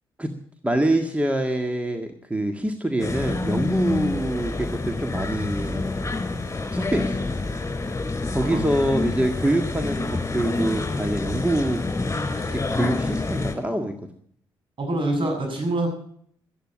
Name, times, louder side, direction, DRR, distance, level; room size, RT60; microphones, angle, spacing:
voice 1, 0.6-5.8 6.7-7.3 8.3-11.8 12.4-13.9, right 1 dB, 10° right, 6 dB, 1.8 m, -25 dB
sound 1, 3.0-13.5, left 3 dB, 25° left, 4.4 m, -27 dB
voice 2, 14.8-15.9, right 2 dB, 55° right, 3 dB, 7.4 m, -25 dB
13.0 x 10.0 x 8.8 m, 0.62 s
supercardioid pair, 55°, 10 cm